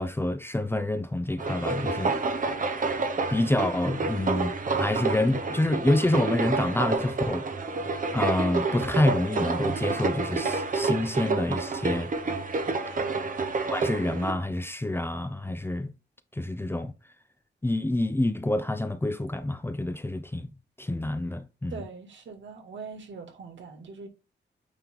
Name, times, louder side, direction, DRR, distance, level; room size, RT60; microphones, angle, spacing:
voice 1, 0.0-2.1 3.3-7.4 8.1-12.1 13.7-15.9 16.4-16.9 17.6-21.8, left 1 dB, 10° left, 0.5 m, -27 dB
sound 1, 1.4-14.3, right 3 dB, 45° right, 1.0 m, -29 dB
voice 2, 12.8-13.3 21.7-24.1, right 5 dB, 85° right, 2.2 m, -42 dB
9.0 x 3.2 x 3.7 m
wide cardioid pair, 170°, 19 cm